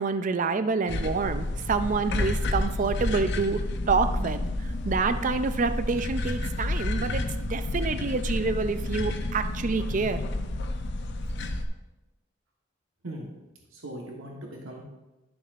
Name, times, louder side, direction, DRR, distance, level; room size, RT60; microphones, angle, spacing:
voice 1, 0.0-4.4 4.8-7.2 7.5-10.2, right 4 dB, 40° right, 11 dB, 0.4 m, -27 dB
sound 1, 0.9-11.6, left 2 dB, 60° left, 0.6 m, -30 dB
voice 2, 13.7-14.8, right 1 dB, 85° right, -1 dB, 1.3 m, -39 dB
11.5 x 7.0 x 2.5 m, 1.0 s
head